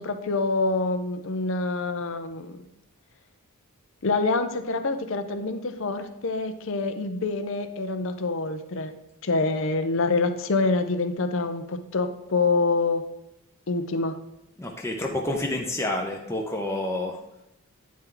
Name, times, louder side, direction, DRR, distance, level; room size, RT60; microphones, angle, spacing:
voice 1, 0.0-2.6 4.0-8.9 9.2-13.0 13.7-14.2, left 3 dB, 60° left, 9 dB, 0.6 m, -26 dB
voice 2, 14.6-17.2, left 1 dB, 10° left, 0 dB, 0.6 m, -29 dB
9.4 x 4.4 x 3.8 m, 0.89 s
head